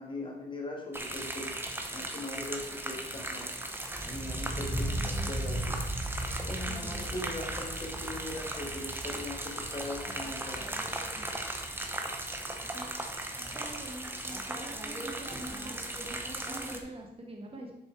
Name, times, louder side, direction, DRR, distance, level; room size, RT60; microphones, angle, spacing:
voice 1, 0.0-1.5 1.9-3.5 4.0-5.8 6.5-10.7, left 1 dB, 30° left, 0 dB, 2.1 m, -40 dB
sound 1, 0.9-16.8, right 1 dB, 10° right, 1.0 m, -36 dB
voice 2, 4.9-5.3 6.6-7.1 12.6-12.9 13.3-17.7, right 1 dB, 35° right, 0 dB, 1.5 m, -45 dB
8.2 x 7.2 x 4.7 m, 0.91 s
wide cardioid pair, 130°, 17 cm